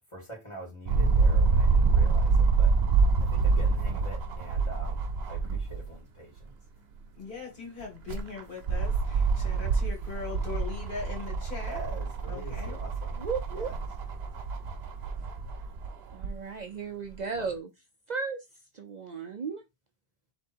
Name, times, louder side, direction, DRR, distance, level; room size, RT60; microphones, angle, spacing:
voice 1, 0.1-2.7 3.2-6.5 11.6-13.2 13.5-13.8 17.3-17.5, right 1 dB, 30° left, 2.5 m, -44 dB
sound 1, 0.9-5.9 6.4-6.5 7.8-16.3 17.1-17.2, right 4 dB, 80° right, 1.0 m, -26 dB
voice 2, 7.2-11.8 12.3-12.8, left 5 dB, 55° left, 2.1 m, -40 dB
voice 3, 13.2-13.8 16.1-17.7 18.1-18.4 18.7-19.6, right 5 dB, 50° right, 0.6 m, -35 dB
3.6 x 3.0 x 4.3 m
omnidirectional pair, 1.0 m